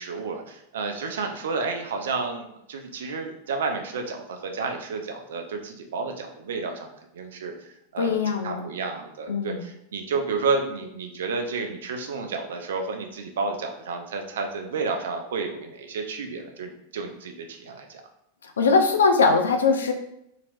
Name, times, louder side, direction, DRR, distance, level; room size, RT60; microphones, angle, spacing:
voice 1, 0.0-18.0, right 4 dB, 60° right, 4 dB, 0.4 m, -31 dB
voice 2, 8.0-8.7 9.3-9.6 18.4-19.9, left 4 dB, 65° left, 5 dB, 0.4 m, -21 dB
2.9 x 2.8 x 2.6 m, 0.78 s
figure-of-eight pair, 90°, 0 cm